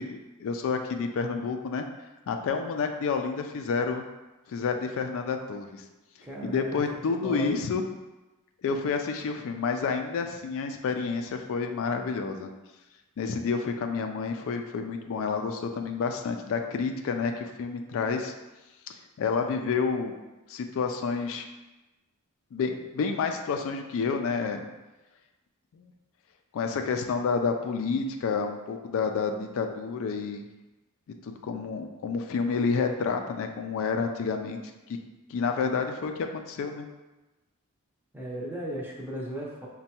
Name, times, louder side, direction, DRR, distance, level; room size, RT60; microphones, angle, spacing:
voice 1, 0.0-1.9 2.3-4.0 4.5-5.8 6.4-7.8 8.6-12.5 13.2-18.3 18.9-20.1 20.5-21.5 22.5-24.7 25.7-25.9 26.5-30.4 31.2-34.6 35.3-36.9, left 5 dB, 65° left, 5 dB, 0.3 m, -29 dB
voice 2, 6.2-6.8 7.2-7.6 38.1-39.7, right 1 dB, 10° right, -4 dB, 0.6 m, -36 dB
5.2 x 2.2 x 2.8 m, 1.1 s
head